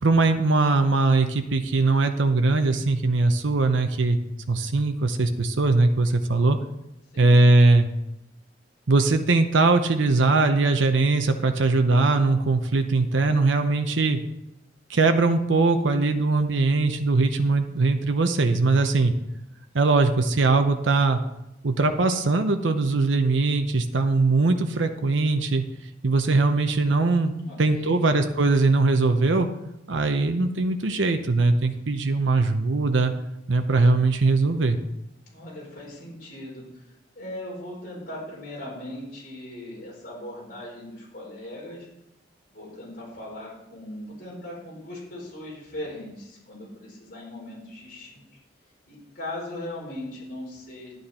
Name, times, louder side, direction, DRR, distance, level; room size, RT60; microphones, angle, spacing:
voice 1, 0.0-4.2 4.5-6.6 7.2-7.9 8.9-14.2 14.9-19.1 19.7-21.2 21.6-25.6 26.0-29.5 29.9-33.1 33.5-34.8, right 3 dB, 85° right, 7 dB, 0.8 m, -21 dB
voice 2, 27.4-27.9 35.3-41.9 42.5-48.3 48.9-50.9, left 1 dB, 50° left, -3 dB, 4.6 m, -39 dB
11.0 x 9.3 x 4.3 m, 0.87 s
head